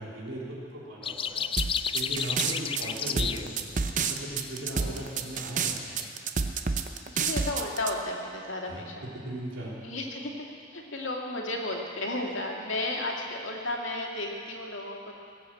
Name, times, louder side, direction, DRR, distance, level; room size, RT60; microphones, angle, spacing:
voice 1, 0.0-1.5 1.9-3.7 3.9-6.0 8.7-9.7, right 1 dB, 80° right, -4 dB, 3.8 m, -38 dB
sound 1, 1.0-6.1, left 7 dB, 25° left, 0.3 m, -33 dB
sound 2, 1.6-7.9, right 5 dB, 40° right, 0.7 m, -29 dB
voice 2, 7.1-9.1 9.8-15.1, left 2 dB, 80° left, 0 dB, 2.3 m, -33 dB
20.5 x 8.4 x 7.8 m, 2.5 s
head